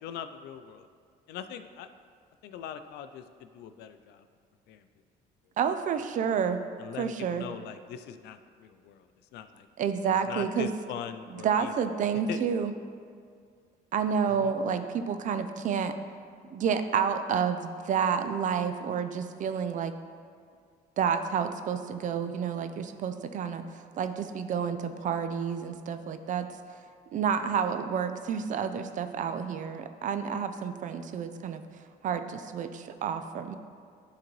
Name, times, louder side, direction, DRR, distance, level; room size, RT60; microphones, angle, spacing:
voice 1, 0.0-0.9 1.3-1.9 2.4-4.3 4.7-4.9 6.8-9.1 9.3-9.7 10.2-11.7 12.3-12.4 14.3-14.5, left 9 dB, 80° left, 10 dB, 0.4 m, -41 dB
voice 2, 5.6-6.6 7.0-7.5 9.8-10.7 11.4-12.7 13.9-15.9 16.5-19.9 21.0-23.6 23.9-26.5 27.1-31.6 32.0-33.6, right 7 dB, 50° right, 9 dB, 0.5 m, -29 dB
10.5 x 3.9 x 3.1 m, 2.2 s
cardioid pair, 110°, 17 cm